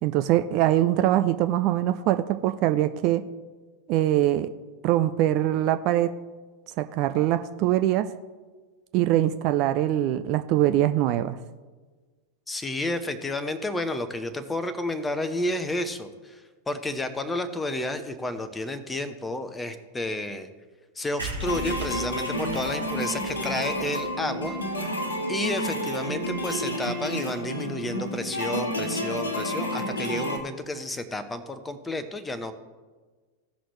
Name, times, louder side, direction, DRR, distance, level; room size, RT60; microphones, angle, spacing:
voice 1, 0.0-3.3 3.9-4.5 4.8-6.1 6.8-8.1 8.9-11.4, right 13 dB, 40° right, 10 dB, 0.4 m, -23 dB
voice 2, 12.5-20.5 21.0-24.9 25.3-32.5, left 1 dB, 10° left, 10 dB, 0.9 m, -31 dB
sound 1, 21.2-24.9 25.3-25.4 25.6-25.7 25.9-26.0 26.2-26.5, right 1 dB, 85° right, 1.9 m, -38 dB
sound 2, 21.4-30.4, equal, 70° left, 1.3 m, -30 dB
16.5 x 6.1 x 3.1 m, 1.4 s
figure-of-eight pair, 90°, 0 cm